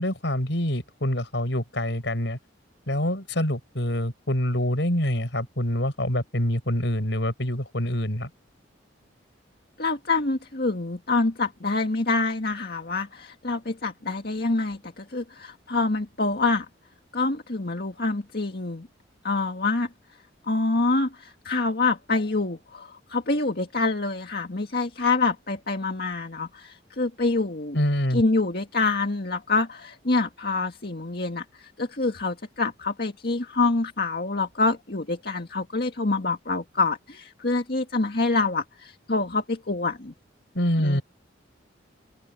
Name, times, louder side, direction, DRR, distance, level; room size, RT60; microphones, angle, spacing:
voice 1, 0.0-2.4 2.9-8.3 27.7-28.2 40.5-41.0, left 1 dB, 70° left, 5.1 m, -26 dB
voice 2, 9.8-16.7 17.1-18.9 19.2-19.9 20.5-27.8 28.1-40.1 40.8-41.0, left 3 dB, 55° left, 1.9 m, -26 dB
open air
head